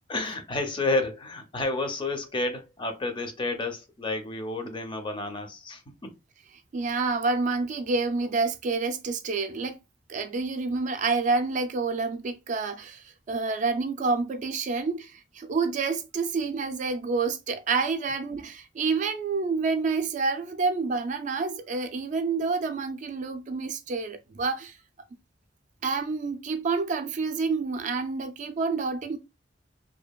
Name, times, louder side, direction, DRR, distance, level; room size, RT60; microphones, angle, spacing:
voice 1, 0.1-6.1, left 2 dB, 30° left, 0.5 m, -30 dB
voice 2, 6.7-9.8 10.1-24.7 25.8-29.2, right 4 dB, 45° right, 0.3 m, -28 dB
2.6 x 2.4 x 2.2 m
head